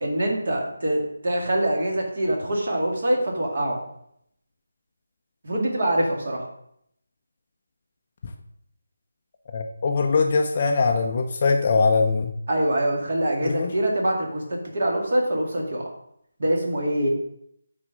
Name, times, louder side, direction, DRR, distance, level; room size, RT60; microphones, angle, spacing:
voice 1, 0.0-3.8 5.4-6.4 12.5-15.9 16.4-17.1, right 1 dB, 45° right, 0 dB, 2.1 m, -24 dB
voice 2, 9.5-12.3 13.4-13.7, left 4 dB, 25° left, 3 dB, 0.5 m, -22 dB
8.8 x 4.2 x 6.2 m, 0.74 s
figure-of-eight pair, 175°, 0 cm